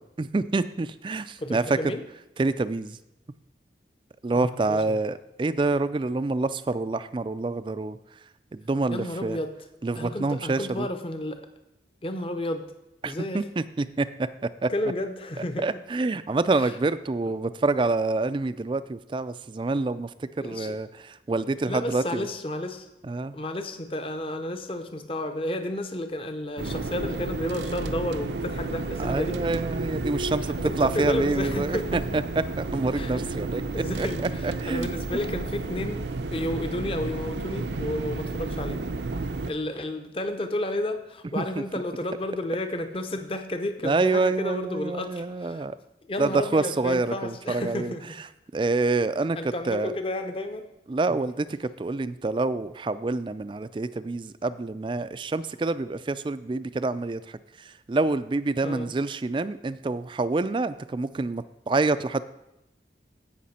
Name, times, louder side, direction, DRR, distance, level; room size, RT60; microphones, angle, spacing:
voice 1, 0.0-1.8 2.4-3.0 4.2-8.0 8.5-9.4 9.8-10.9 13.0-14.3 14.6-14.7 15.6-22.3 23.0-23.4 29.0-32.2 32.6-33.6 34.0-34.1 34.4-34.9 41.4-41.6 43.8-45.8 46.2-47.9 48.5-49.4 49.7-49.9 50.9-62.2, right 3 dB, 25° right, 14 dB, 0.3 m, -27 dB
voice 2, 1.4-2.0 4.3-5.0 8.9-9.5 10.0-11.5 12.0-12.6 13.0-13.4 14.7-15.7 16.5-16.8 20.4-20.8 21.6-22.9 23.3-29.4 30.4-32.2 32.9-33.3 33.7-38.8 39.5-45.6 46.0-48.0 49.4-50.7 58.6-58.9, left 1 dB, 30° left, 7 dB, 0.7 m, -32 dB
sound 1, 26.6-39.5, right 3 dB, 75° right, 0.6 m, -32 dB
16.0 x 5.9 x 4.2 m, 0.91 s
head